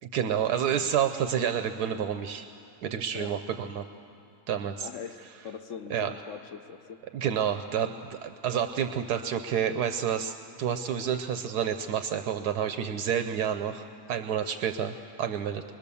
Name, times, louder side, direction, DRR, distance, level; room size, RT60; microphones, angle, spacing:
voice 1, 0.1-2.5 2.8-3.9 4.5-4.9 5.9-6.1 7.1-15.6, right 8 dB, 80° right, 8 dB, 1.2 m, -29 dB
voice 2, 4.8-7.0, left 7 dB, 60° left, 8 dB, 0.9 m, -41 dB
26.0 x 21.0 x 6.9 m, 2.8 s
omnidirectional pair, 1.7 m